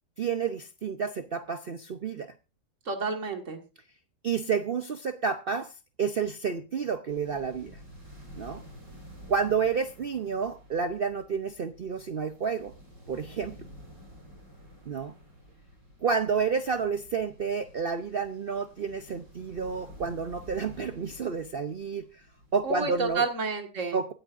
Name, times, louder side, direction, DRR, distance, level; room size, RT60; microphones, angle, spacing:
voice 1, 0.2-2.3 4.2-5.7 6.0-7.8 8.4-8.6 9.3-12.7 13.1-13.7 14.9-15.1 16.0-22.3 22.5-23.2 23.9-24.1, right 6 dB, 70° right, 9 dB, 0.5 m, -30 dB
voice 2, 2.9-3.6 22.6-24.0, right 4 dB, 45° right, 4 dB, 2.1 m, -30 dB
sound 1, 7.1-23.3, equal, 90° right, 8.1 m, -51 dB
25.0 x 8.6 x 2.5 m, 0.28 s
omnidirectional pair, 1.9 m